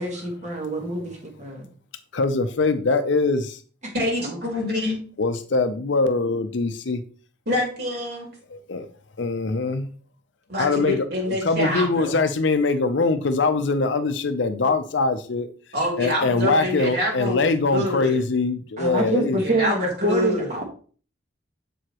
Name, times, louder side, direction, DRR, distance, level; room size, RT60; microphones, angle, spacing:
voice 1, 0.0-1.7 4.2-4.4 18.8-20.7, right 1 dB, 35° right, 1 dB, 1.5 m, -26 dB
voice 2, 2.1-3.6 5.2-7.0 8.5-8.9 9.2-9.9 10.6-11.0 11.3-15.5 16.0-19.4, left 3 dB, 65° left, 9 dB, 0.6 m, -22 dB
voice 3, 3.9-5.0 7.5-8.3 10.5-12.1 15.7-18.2 19.4-20.5, left 1 dB, 55° right, -1 dB, 2.6 m, -26 dB
7.0 x 4.8 x 3.0 m, 0.41 s
head